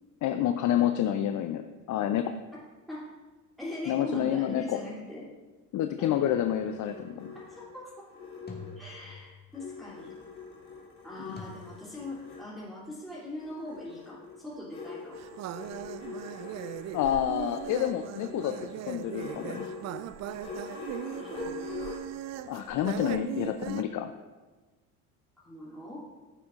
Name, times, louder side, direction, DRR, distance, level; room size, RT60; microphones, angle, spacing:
voice 1, 0.2-2.3 3.9-4.8 5.7-7.3 16.9-19.7 22.5-24.1, left 10 dB, 45° left, 8 dB, 0.6 m, -29 dB
voice 2, 3.6-5.3 6.0-6.3 7.6-8.1 8.8-10.1 11.0-15.2 21.1-22.0 25.4-26.0, left 1 dB, ahead, -9 dB, 3.0 m, -41 dB
sound 1, 5.8-9.2 9.5-12.5 13.4-22.0, left 4 dB, 85° left, 2.8 m, -44 dB
sound 2, 6.4-6.9 8.5-9.7 11.4-11.5, left 4 dB, 20° left, 1.9 m, -46 dB
sound 3, 15.1-23.8, right 12 dB, 40° right, 0.4 m, -39 dB
15.0 x 6.9 x 2.5 m, 1.2 s
hypercardioid pair, 65°, 44 cm